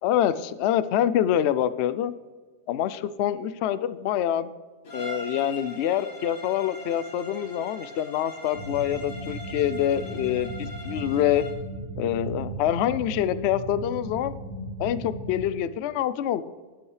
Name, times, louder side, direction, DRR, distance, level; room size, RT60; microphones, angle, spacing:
voice 1, 0.0-2.1 2.7-4.5 4.9-11.4 12.0-14.3 14.8-16.4, left 11 dB, 85° left, 15 dB, 0.6 m, -26 dB
Bowed string instrument, 4.8-11.7, equal, 50° left, 2.2 m, -41 dB
sound 1, 8.5-15.4, right 1 dB, 60° right, 2.4 m, -36 dB
12.5 x 11.5 x 3.2 m, 1.4 s
omnidirectional pair, 1.7 m